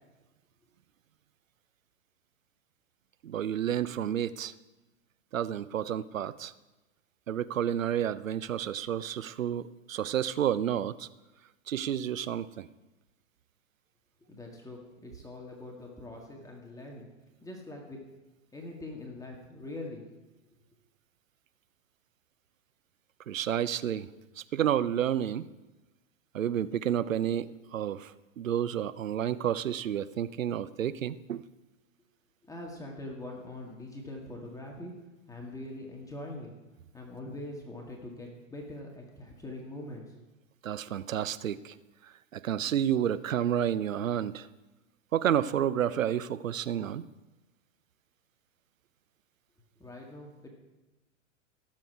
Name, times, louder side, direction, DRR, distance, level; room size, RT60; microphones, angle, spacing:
voice 1, 3.2-4.5 5.3-6.5 7.3-11.1 11.7-12.7 23.3-24.1 24.4-25.5 26.3-31.4 40.6-41.7 42.0-44.5 45.1-47.1, right 10 dB, 80° right, 15 dB, 0.7 m, -30 dB
voice 2, 14.3-17.1 17.4-18.0 18.5-20.0 32.4-34.9 35.3-36.5 36.9-40.2 49.8-50.5, left 1 dB, 10° left, -1 dB, 2.0 m, -43 dB
17.0 x 7.7 x 4.8 m, 1.1 s
hypercardioid pair, 105°, 39 cm